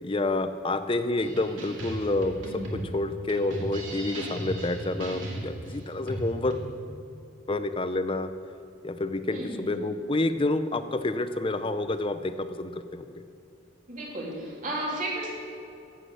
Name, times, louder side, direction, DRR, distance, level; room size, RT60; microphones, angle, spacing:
voice 1, 0.0-6.6 7.5-8.3 8.8-13.1, left 2 dB, 25° left, 11 dB, 0.5 m, -29 dB
sound 1, 1.2-6.6, right 1 dB, 75° right, 2.6 m, -36 dB
voice 2, 9.3-9.9 13.9-15.3, right 1 dB, 40° right, -4 dB, 3.2 m, -33 dB
15.5 x 8.4 x 6.5 m, 2.7 s
head